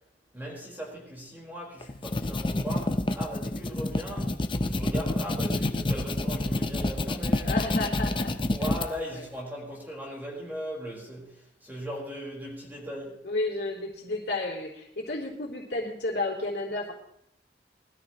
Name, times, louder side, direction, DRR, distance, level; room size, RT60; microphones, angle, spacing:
voice 1, 0.3-7.5 8.5-13.3, equal, 10° right, 4.5 m, -38 dB
sound 1, 1.8-8.9, left 2 dB, 30° left, 0.7 m, -28 dB
voice 2, 7.4-8.3 9.1-9.2 13.2-16.9, left 2 dB, 65° left, 3.4 m, -32 dB
21.0 x 13.5 x 3.1 m
head